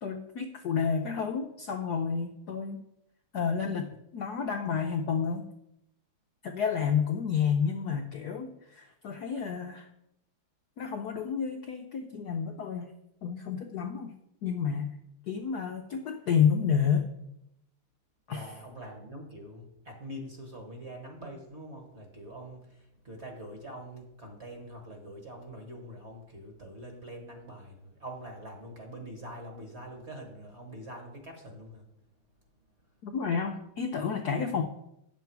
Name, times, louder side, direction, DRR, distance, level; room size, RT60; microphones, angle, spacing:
voice 1, 0.0-2.8 3.3-5.5 6.4-9.9 10.8-12.9 13.2-14.1 14.4-14.9 15.3-17.1 18.3-18.5 33.0-34.6, left 7 dB, 70° left, 4 dB, 1.0 m, -30 dB
voice 2, 18.3-31.8, right 1 dB, 35° right, 2 dB, 1.5 m, -44 dB
9.4 x 6.9 x 4.6 m, 0.81 s
omnidirectional pair, 2.4 m